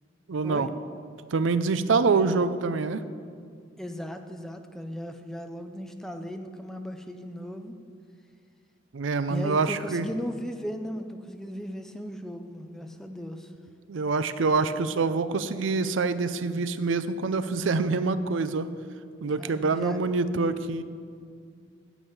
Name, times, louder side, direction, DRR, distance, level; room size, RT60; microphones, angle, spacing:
voice 1, 0.3-0.7 1.3-3.0 8.9-10.1 13.9-18.7 19.2-20.8, right 4 dB, 80° right, 13 dB, 0.5 m, -25 dB
voice 2, 3.8-7.8 9.3-13.5 19.4-20.0, equal, 5° left, 6 dB, 0.5 m, -37 dB
9.0 x 7.2 x 7.9 m, 2.2 s
head